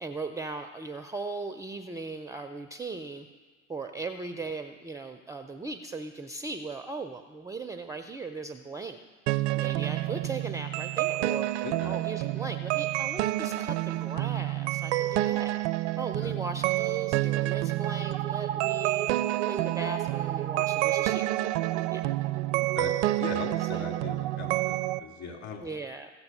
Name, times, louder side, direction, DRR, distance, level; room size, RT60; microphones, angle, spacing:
voice 1, 0.0-3.3 3.7-9.0 9.6-15.5 16.0-19.1 19.4-21.3 21.9-22.1 23.6-23.9 25.6-26.1, right 3 dB, 10° right, 7 dB, 0.4 m, -38 dB
sound 1, 9.3-25.0, right 16 dB, 65° right, 0.5 m, -28 dB
voice 2, 11.6-11.9 16.2-16.3 22.6-22.9 23.2-25.6, left 5 dB, 45° left, 2 dB, 2.6 m, -39 dB
16.0 x 6.9 x 5.4 m, 1.4 s
figure-of-eight pair, 70°, 37 cm